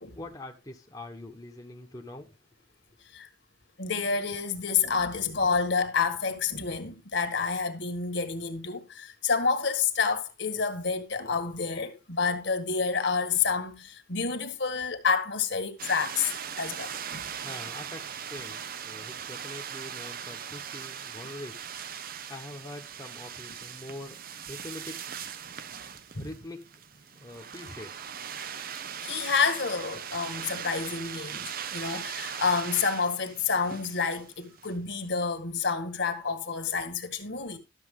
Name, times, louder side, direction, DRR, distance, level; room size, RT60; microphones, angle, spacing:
voice 1, 0.1-2.3 17.4-21.7 22.0-24.2 24.5-25.0 26.2-26.6 27.2-28.0, left 1 dB, 15° left, 1.2 m, -43 dB
voice 2, 3.8-16.3 16.6-17.3 26.1-26.3 29.0-37.6, left 5 dB, 60° left, 1.7 m, -29 dB
sound 1, 15.8-34.7, right 8 dB, 45° right, 0.6 m, -40 dB
12.5 x 7.3 x 3.7 m
head